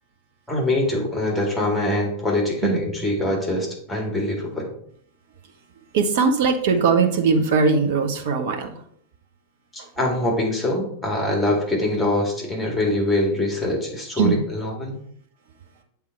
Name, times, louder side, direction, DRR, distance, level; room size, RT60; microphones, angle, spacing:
voice 1, 0.5-4.7 9.7-15.0, left 1 dB, 5° left, -1 dB, 2.1 m, -24 dB
voice 2, 5.9-8.7 14.2-14.4, right 5 dB, 55° right, 5 dB, 1.0 m, -20 dB
7.5 x 3.7 x 4.5 m, 0.64 s
figure-of-eight pair, 90°, 0 cm